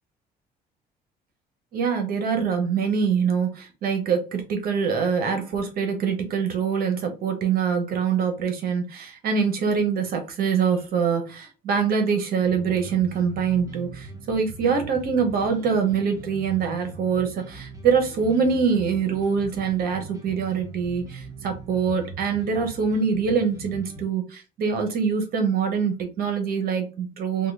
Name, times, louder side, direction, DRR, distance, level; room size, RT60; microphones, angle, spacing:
voice 1, 1.7-27.5, right 6 dB, 60° right, 0.9 m, -24 dB
sound 1, 12.4-24.0, right 2 dB, 20° right, 0.9 m, -41 dB
3.6 x 2.2 x 3.3 m
cardioid pair, 110°, 17 cm